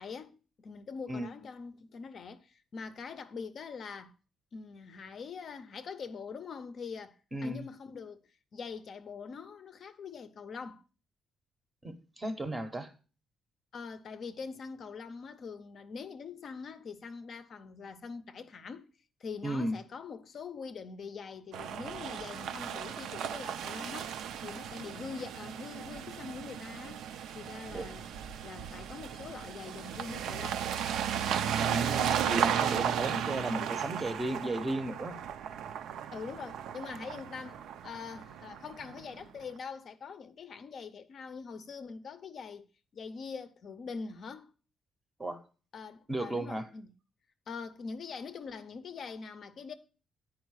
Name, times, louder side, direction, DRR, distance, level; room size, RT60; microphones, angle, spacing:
voice 1, 0.0-4.1 4.5-8.2 8.5-10.8 13.7-18.9 19.2-27.1 27.3-28.0 28.4-30.6 36.1-42.7 42.9-44.5 45.7-46.9 47.5-49.7, left 5 dB, 45° left, 0.5 m, -43 dB
voice 2, 7.3-7.7 11.8-12.9 19.4-19.8 27.7-27.9 31.6-35.1 45.2-45.4 46.1-46.6, right 1 dB, 15° right, 0.7 m, -35 dB
sound 1, 21.5-39.2, right 8 dB, 80° right, 0.5 m, -35 dB
9.3 x 4.7 x 4.6 m
cardioid pair, 170°, 0 cm